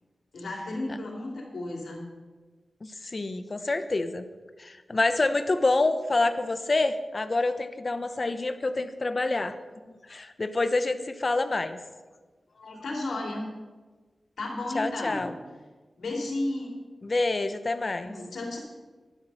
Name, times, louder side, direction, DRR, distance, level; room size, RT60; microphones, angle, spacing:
voice 1, 0.3-2.0 12.5-13.5 14.4-15.3 16.0-16.7 18.0-18.6, left 2 dB, 90° left, 0 dB, 3.0 m, -33 dB
voice 2, 2.8-4.2 4.6-9.6 9.9-11.8 14.7-15.3 17.0-18.1, left 2 dB, 35° left, 10 dB, 0.8 m, -27 dB
12.5 x 11.0 x 5.7 m, 1.3 s
wide cardioid pair, 145°, 0 cm